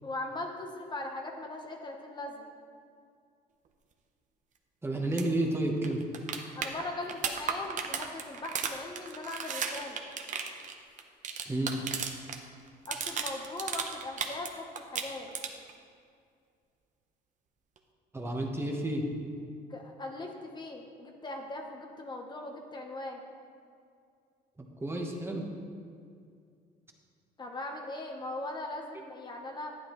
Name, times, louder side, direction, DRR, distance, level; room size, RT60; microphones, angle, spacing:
voice 1, 0.0-2.5 6.5-10.0 12.9-15.3 19.7-23.2 27.4-29.8, left 2 dB, 25° left, 2 dB, 1.0 m, -40 dB
voice 2, 4.8-6.0 11.5-12.2 18.1-19.1 24.6-25.4, right 1 dB, 15° right, 1 dB, 1.1 m, -31 dB
sound 1, 5.1-5.2 5.5-5.6 5.8-12.4 12.7-14.5 14.7-15.7 17.8-17.9, right 6 dB, 50° right, 0.9 m, -35 dB
11.0 x 9.8 x 3.1 m, 2.3 s
cardioid pair, 110°, 17 cm